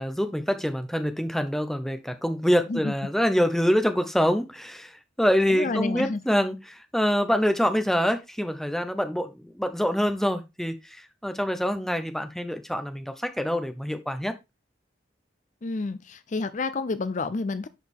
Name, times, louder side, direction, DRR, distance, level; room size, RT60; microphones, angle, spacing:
voice 1, 0.0-14.3, equal, ahead, 0.8 m, -25 dB
voice 2, 5.5-6.2 15.6-17.7, left 3 dB, 40° left, 0.5 m, -29 dB
10.5 x 4.8 x 3.6 m
head